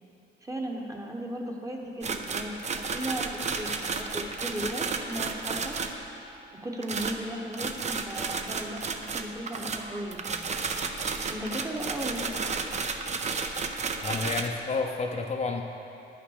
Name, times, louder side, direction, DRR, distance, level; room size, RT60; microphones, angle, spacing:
voice 1, 0.4-5.8 6.6-10.4 11.3-12.4, right 1 dB, 15° right, 1 dB, 1.1 m, -36 dB
sound 1, 2.0-6.0 6.8-14.5, right 4 dB, 35° right, 0.6 m, -32 dB
voice 2, 14.0-15.6, left 4 dB, 35° left, 2 dB, 0.7 m, -30 dB
9.1 x 5.9 x 6.4 m, 2.8 s
cardioid pair, 90°, 20 cm